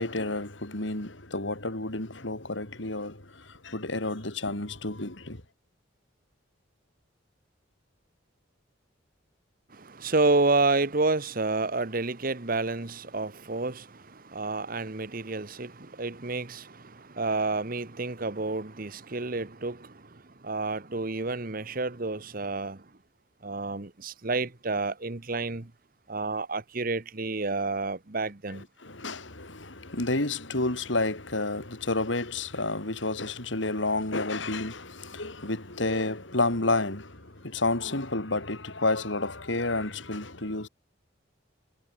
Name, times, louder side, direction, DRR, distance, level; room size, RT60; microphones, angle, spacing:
voice 1, 0.0-5.4 28.5-40.7, left 2 dB, 70° left, 3.5 m, -30 dB
voice 2, 9.7-22.8 23.4-25.7 26.1-28.6, right 3 dB, 45° right, 1.2 m, -30 dB
head